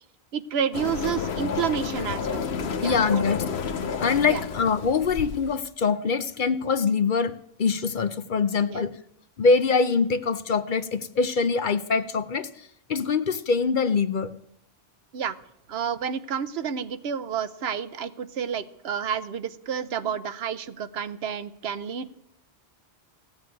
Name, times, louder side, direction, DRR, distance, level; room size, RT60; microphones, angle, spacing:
voice 1, 0.3-2.5 2.8-3.3 4.3-4.4 8.7-8.9 15.1-15.4 15.7-22.1, right 7 dB, 75° right, 13 dB, 1.0 m, -30 dB
sound 1, 0.7-5.6, left 6 dB, 75° left, 1.2 m, -31 dB
voice 2, 2.8-7.3 7.6-8.9 9.4-14.3, left 5 dB, 55° left, 12 dB, 0.8 m, -24 dB
15.5 x 6.9 x 9.3 m, 0.74 s
omnidirectional pair, 1.1 m